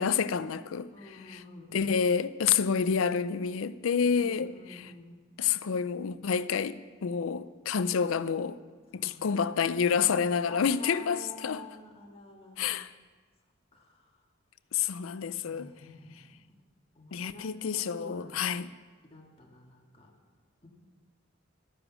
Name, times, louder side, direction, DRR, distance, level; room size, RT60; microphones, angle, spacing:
voice 1, 0.0-0.9 1.7-4.5 5.4-8.6 8.9-11.6 12.6-12.9 14.7-15.7 17.1-18.7, left 6 dB, 90° left, 0.5 m, -28 dB
voice 2, 0.9-2.0 4.2-5.2 8.9-12.7 13.7-14.2 15.4-16.4 16.9-18.4 19.0-20.1 20.6-20.7, left 2 dB, 30° left, 1.8 m, -49 dB
13.0 x 9.9 x 6.1 m
head